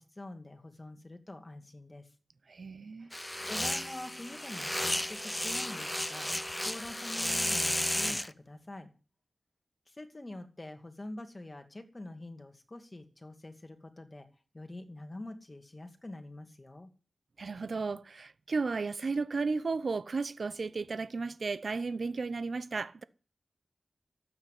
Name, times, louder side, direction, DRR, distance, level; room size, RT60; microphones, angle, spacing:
voice 1, 0.0-2.1 3.0-3.1 3.5-8.9 9.9-14.3 14.5-16.9, left 1 dB, 30° left, 2.4 m, -46 dB
voice 2, 2.5-3.1 17.4-23.0, right 4 dB, 70° right, 0.7 m, -34 dB
sound 1, 3.1-8.3, left 1 dB, 10° left, 0.6 m, -33 dB
13.0 x 8.7 x 9.4 m
wide cardioid pair, 75°, 0 cm